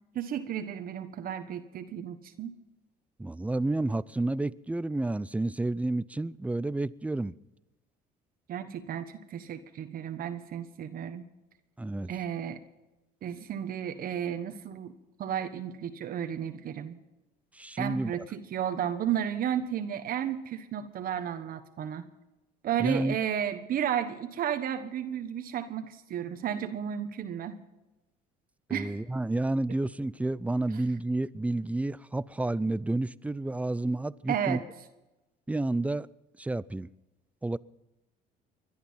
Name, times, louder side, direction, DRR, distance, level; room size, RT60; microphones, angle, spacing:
voice 1, 0.1-2.5 8.5-11.3 12.1-12.6 13.2-14.9 15.2-17.0 17.8-22.0 22.6-27.6 28.7-29.0 34.3-34.6, right 9 dB, 60° right, 1.3 m, -33 dB
voice 2, 3.2-7.3 11.8-12.1 17.5-18.1 22.8-23.2 28.7-34.6 35.5-36.1 36.4-36.9 37.4-37.6, right 2 dB, 10° right, 0.5 m, -30 dB
21.5 x 12.0 x 5.6 m
cardioid pair, 110°, 17 cm